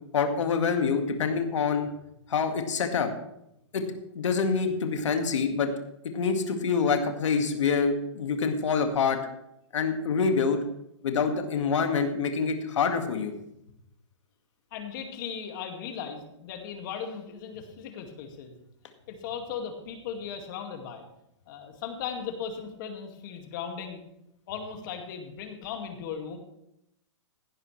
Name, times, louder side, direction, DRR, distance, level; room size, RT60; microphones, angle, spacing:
voice 1, 0.1-1.9 2.3-3.1 3.7-3.8 4.2-5.7 6.1-9.2 9.7-10.6 11.0-13.3, left 5 dB, 75° left, 5 dB, 1.9 m, -26 dB
voice 2, 14.7-18.6 19.1-21.0 21.5-24.0 24.5-26.4, left 7 dB, 40° left, 4 dB, 2.1 m, -37 dB
16.5 x 11.0 x 3.3 m, 0.80 s
hypercardioid pair, 150°, 16 cm